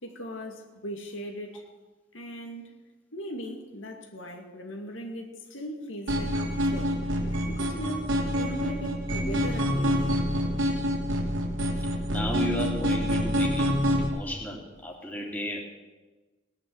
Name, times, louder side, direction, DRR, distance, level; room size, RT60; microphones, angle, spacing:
voice 1, 0.0-1.7 2.1-2.7 3.1-7.0 7.5-10.1, equal, 80° left, 2.4 m, -39 dB
sound 1, 6.1-14.1, equal, 85° right, 2.9 m, -27 dB
voice 2, 12.1-15.6, equal, 10° left, 2.7 m, -34 dB
18.0 x 10.0 x 7.9 m
head